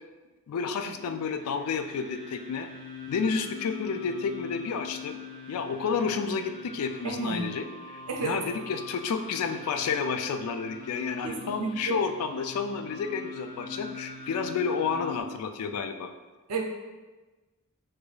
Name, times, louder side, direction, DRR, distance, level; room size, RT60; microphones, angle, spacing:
voice 1, 0.5-2.7 3.1-5.2 5.5-7.6 7.9-16.1, left 5 dB, 75° left, 8 dB, 0.3 m, -30 dB
sound 1, 0.9-15.2, left 5 dB, 20° left, 0.7 m, -43 dB
voice 2, 7.0-7.5 8.1-8.4 11.2-12.0 16.5-16.6, right 4 dB, 85° right, 1 dB, 0.6 m, -31 dB
4.7 x 2.6 x 2.3 m, 1.2 s
head